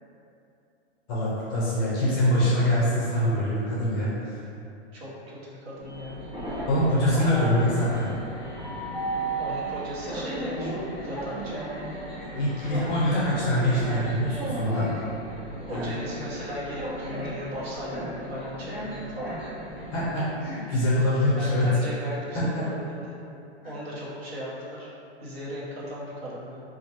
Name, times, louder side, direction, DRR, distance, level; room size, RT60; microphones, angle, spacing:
voice 1, 1.1-4.4 6.7-8.1 12.3-14.9 15.7-15.9 19.9-21.7 22.3-22.6 23.6-23.7, left 1 dB, 20° left, -7 dB, 0.5 m, -24 dB
voice 2, 4.9-6.2 7.1-7.6 9.4-11.6 15.6-19.4 21.4-22.8 23.0-23.1 23.6-24.9 25.2-26.6, equal, 65° right, -6 dB, 1.1 m, -36 dB
Train, 5.8-20.2, right 1 dB, 15° right, 1.3 m, -35 dB
4.3 x 2.5 x 2.9 m, 2.7 s
hypercardioid pair, 165°, 33 cm